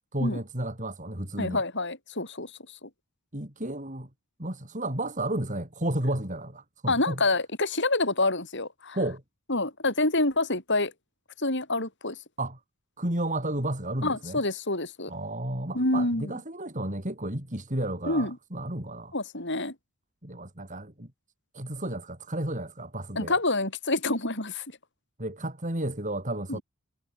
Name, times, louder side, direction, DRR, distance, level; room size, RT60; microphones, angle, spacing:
voice 1, 0.1-1.6 3.3-4.1 4.4-7.2 8.9-9.2 12.4-12.6 13.0-14.4 15.1-19.1 20.2-21.1 21.5-23.4 25.2-26.6, right 1 dB, 35° right, 4.7 m, -32 dB
voice 2, 1.4-2.5 2.8-2.9 6.9-9.0 9.5-10.9 11.4-12.1 14.0-15.1 15.7-16.3 18.0-18.4 19.1-19.7 23.1-24.6 26.5-26.6, left 2 dB, 50° left, 6.7 m, -27 dB
head